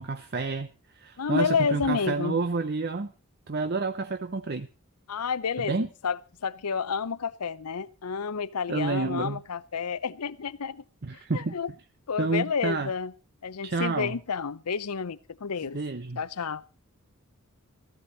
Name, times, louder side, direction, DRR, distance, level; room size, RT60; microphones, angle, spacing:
voice 1, 0.0-3.1 3.5-4.7 5.7-5.9 8.7-9.4 11.0-11.6 12.2-12.9 13.6-14.1 15.7-16.2, right 3 dB, 45° right, 0.7 m, -29 dB
voice 2, 1.2-2.4 5.1-5.7 6.0-10.8 11.3-11.7 12.1-13.1 13.4-15.8 16.2-16.6, left 5 dB, 85° left, 0.7 m, -30 dB
15.0 x 14.5 x 4.1 m
head